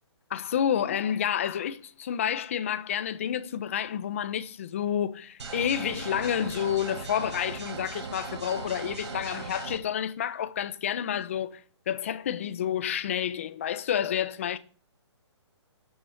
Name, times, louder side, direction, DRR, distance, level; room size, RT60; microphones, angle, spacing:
voice 1, 0.3-14.6, left 9 dB, 25° left, 1.0 m, -29 dB
sound 1, 5.4-9.8, right 5 dB, 70° right, 5.2 m, -38 dB
12.5 x 7.4 x 9.8 m
hypercardioid pair, 175°, 15 cm